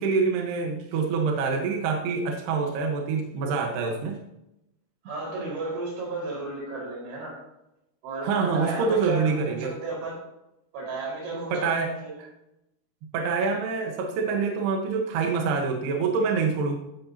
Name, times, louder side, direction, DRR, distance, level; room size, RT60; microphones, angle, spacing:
voice 1, 0.0-4.2 8.2-9.7 11.5-12.3 13.1-16.8, right 5 dB, 70° right, 2 dB, 3.1 m, -26 dB
voice 2, 5.0-7.4 8.0-10.2 10.7-12.1, right 3 dB, 85° right, -3 dB, 7.3 m, -33 dB
15.0 x 13.0 x 2.9 m, 0.87 s
omnidirectional pair, 5.2 m